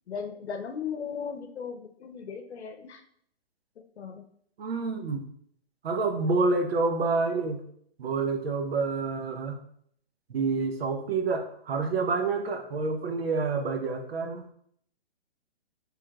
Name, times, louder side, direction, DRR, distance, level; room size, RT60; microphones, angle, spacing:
voice 1, 0.1-3.0 4.0-4.3, left 6 dB, 85° left, 6 dB, 0.8 m, -37 dB
voice 2, 4.6-5.3 5.8-7.6 8.0-9.5 10.3-14.5, right 4 dB, 65° right, 5 dB, 0.8 m, -28 dB
4.6 x 3.3 x 2.3 m, 0.66 s
hypercardioid pair, 160°, 32 cm